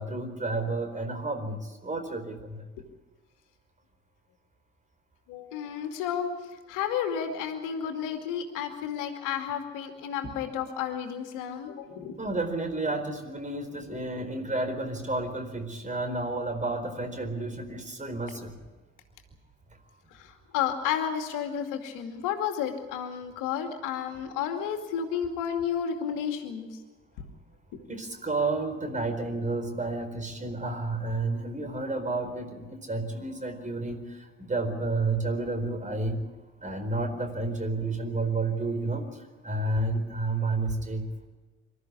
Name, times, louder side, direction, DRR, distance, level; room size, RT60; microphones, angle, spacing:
voice 1, 0.0-2.6 12.2-18.5 27.9-34.0 34.5-36.2 36.6-39.0 39.4-41.0, right 2 dB, 20° right, 7 dB, 4.4 m, -31 dB
voice 2, 5.3-6.3 6.7-12.2 13.9-14.0 20.1-26.7 27.2-27.3, left 8 dB, 60° left, 5 dB, 2.4 m, -32 dB
26.0 x 13.0 x 9.8 m, 1.2 s
figure-of-eight pair, 50°, 35 cm